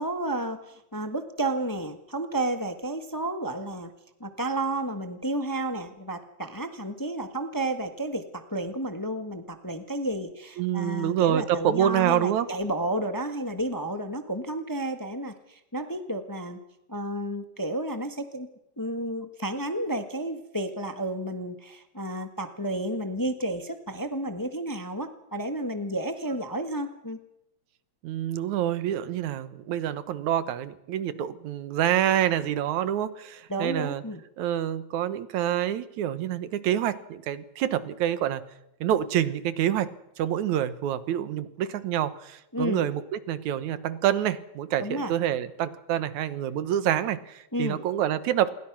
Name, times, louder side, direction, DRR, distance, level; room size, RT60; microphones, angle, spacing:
voice 1, 0.0-3.9 4.2-16.6 16.9-18.5 18.8-27.2 33.5-34.2 42.5-42.9 44.8-45.1 47.5-47.8, right 1 dB, 20° left, 8 dB, 0.5 m, -31 dB
voice 2, 10.6-12.5 28.0-34.0 34.4-38.4 38.8-39.9 40.2-48.5, right 11 dB, 80° right, 14 dB, 2.6 m, -27 dB
27.5 x 22.5 x 6.1 m, 0.85 s
omnidirectional pair, 3.3 m